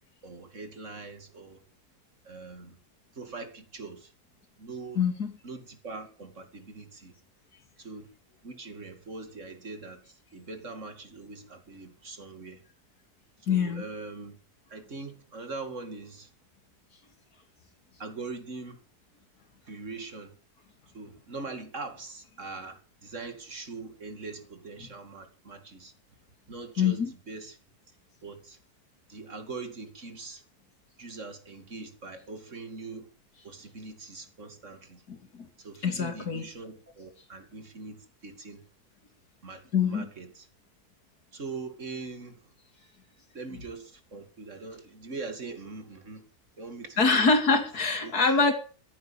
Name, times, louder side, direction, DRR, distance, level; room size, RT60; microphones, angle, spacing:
voice 1, 0.2-1.6 2.2-2.8 3.1-4.1 4.6-5.0 5.4-7.2 7.8-8.1 8.4-12.6 13.4-14.4 14.7-16.3 18.0-18.8 19.6-20.3 20.9-25.9 26.5-27.6 28.2-28.6 29.1-30.4 31.0-33.1 33.4-35.0 35.6-38.6 39.4-40.5 41.3-42.4 43.3-46.2 46.6-47.3 48.0-48.1, right 3 dB, 50° right, 2.7 m, -42 dB
voice 2, 5.0-5.3 13.5-13.8 26.8-27.1 35.1-35.5 35.8-36.4 39.7-40.1 47.0-48.5, left 5 dB, 85° left, 3.0 m, -24 dB
15.0 x 10.5 x 7.1 m
omnidirectional pair, 1.6 m